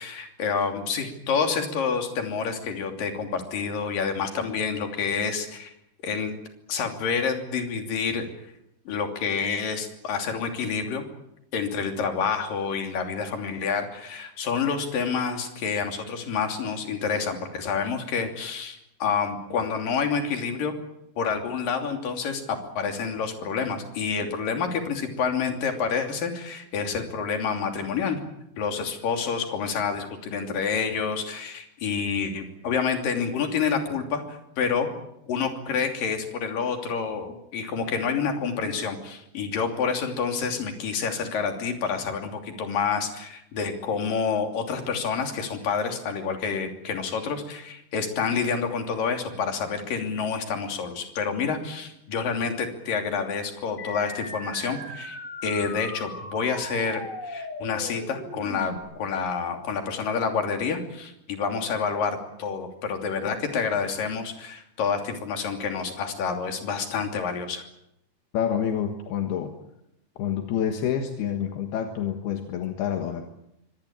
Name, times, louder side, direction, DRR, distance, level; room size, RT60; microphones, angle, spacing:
voice 1, 0.0-5.7 6.0-6.3 6.7-8.3 8.9-11.0 11.5-20.7 21.2-28.2 28.6-34.9 35.3-67.6, left 5 dB, 60° left, 4 dB, 4.5 m, -28 dB
sound 1, 53.8-58.8, left 1 dB, 20° left, 4.4 m, -38 dB
voice 2, 68.3-69.5 70.2-73.3, left 8 dB, 80° left, 5 dB, 3.5 m, -28 dB
25.0 x 19.0 x 8.9 m, 0.80 s
omnidirectional pair, 4.5 m